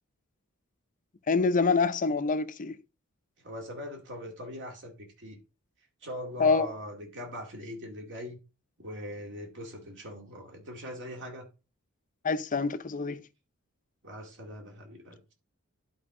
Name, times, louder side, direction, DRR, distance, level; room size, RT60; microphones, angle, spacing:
voice 1, 1.3-2.8 6.4-6.7 12.2-13.2, left 4 dB, 40° left, 0.6 m, -26 dB
voice 2, 3.4-5.4 6.0-8.4 8.8-11.5 14.0-15.3, left 1 dB, 60° right, 2.2 m, -41 dB
11.0 x 4.7 x 3.7 m
head